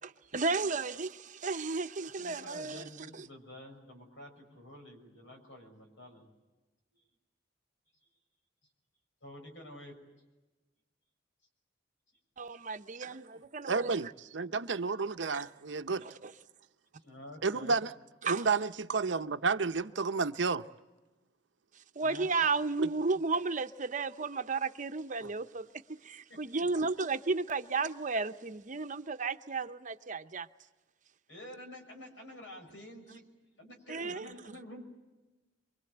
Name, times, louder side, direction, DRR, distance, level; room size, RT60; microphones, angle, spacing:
voice 1, 0.3-3.3 12.4-13.9 15.3-15.5 16.0-16.3 18.2-18.5 22.0-30.5 33.9-34.3, right 4 dB, 45° right, 0.8 m, -33 dB
voice 2, 2.2-6.3 9.2-10.0 17.0-17.8 22.0-22.3 26.3-26.4 31.3-33.2 33.6-34.8, left 1 dB, 85° left, 6.1 m, -49 dB
voice 3, 13.7-16.0 17.4-17.9 18.3-20.7 22.8-22.9, right 4 dB, 70° right, 0.7 m, -31 dB
24.5 x 24.0 x 8.0 m
head